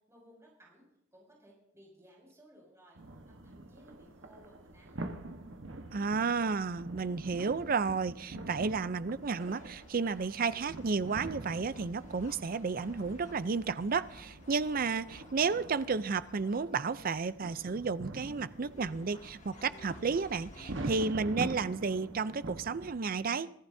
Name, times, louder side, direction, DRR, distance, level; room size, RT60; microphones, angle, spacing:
voice 1, 0.1-0.8 1.1-3.0 3.3-5.0, equal, 15° right, 6.4 m, -59 dB
sound 1, 3.0-22.9, right 2 dB, 85° right, 1.3 m, -45 dB
voice 2, 5.9-23.5, right 4 dB, 50° right, 0.5 m, -32 dB
sound 2, 9.0-20.8, left 1 dB, 40° left, 1.8 m, -55 dB
25.0 x 14.0 x 2.7 m
head